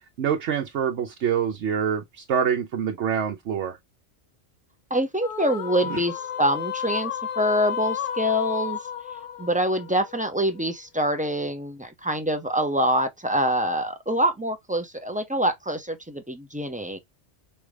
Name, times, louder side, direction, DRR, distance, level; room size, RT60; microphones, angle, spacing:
voice 1, 0.2-3.8 5.9-6.0, right 7 dB, 75° right, 1.0 m, -26 dB
voice 2, 4.9-8.8 9.4-17.0, equal, 10° right, 0.4 m, -25 dB
sound 1, 5.2-10.6, left 9 dB, 60° left, 0.6 m, -32 dB
5.3 x 2.3 x 3.3 m
omnidirectional pair, 1.2 m